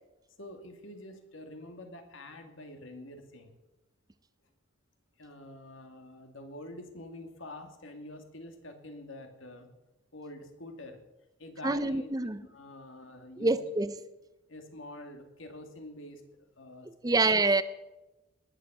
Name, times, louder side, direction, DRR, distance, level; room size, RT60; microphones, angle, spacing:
voice 1, 0.4-3.5 5.2-9.7 10.1-11.0 11.4-13.6 14.5-16.2 16.6-17.2, left 1 dB, 75° left, 2.4 m, -46 dB
voice 2, 11.6-12.4 13.4-13.9 17.0-17.6, right 3 dB, 20° right, 0.5 m, -26 dB
19.5 x 7.7 x 8.0 m
head